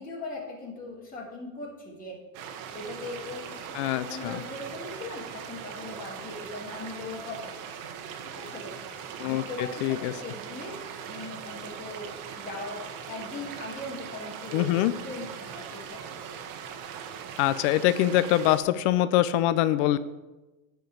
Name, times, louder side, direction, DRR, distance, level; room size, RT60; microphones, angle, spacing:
voice 1, 0.0-2.2 2.7-7.5 8.4-8.7 9.2-10.8 11.0-12.8 13.1-14.7 15.0-16.3, left 2 dB, 20° left, -4 dB, 2.8 m, -39 dB
sound 1, 2.3-18.6, right 7 dB, 50° right, 1.3 m, -40 dB
voice 2, 3.7-4.4 9.2-10.1 14.5-14.9 17.4-20.0, left 14 dB, 60° left, 15 dB, 0.6 m, -24 dB
10.5 x 4.7 x 7.8 m, 1.1 s
supercardioid pair, 125°, 40 cm